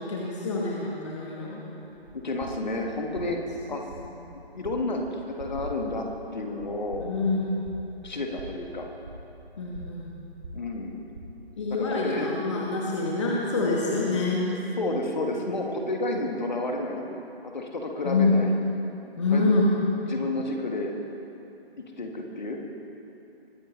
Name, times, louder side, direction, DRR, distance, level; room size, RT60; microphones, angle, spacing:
voice 1, 0.0-1.6 4.0-4.1 7.0-7.5 9.6-10.1 11.6-14.5 18.0-18.4 19.2-19.7, left 3 dB, 30° left, -3 dB, 1.2 m, -26 dB
sound 1, 1.9-11.7, right 1 dB, 30° right, 1.4 m, -44 dB
voice 2, 2.1-3.4 3.7-3.8 4.5-6.1 6.3-7.1 8.0-8.9 10.5-11.0 11.9-12.3 14.8-17.1 17.5-18.6 19.3-19.6 20.1-20.9 21.8-22.6, left 2 dB, 45° left, 2 dB, 1.6 m, -30 dB
21.0 x 10.5 x 3.2 m, 2.9 s
figure-of-eight pair, 155°, 31 cm